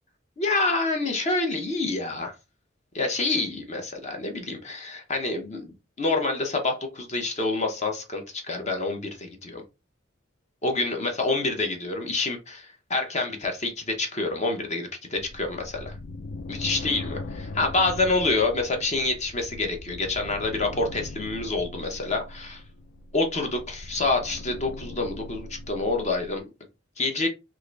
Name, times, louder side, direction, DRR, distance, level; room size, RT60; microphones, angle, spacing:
voice 1, 0.4-2.3 2.9-9.6 10.6-15.9 16.5-22.6 23.1-26.5 27.0-27.3, left 3 dB, 35° left, 0.8 m, -27 dB
sound 1, 15.2-26.4, left 2 dB, 55° left, 0.4 m, -40 dB
3.6 x 2.5 x 3.1 m
head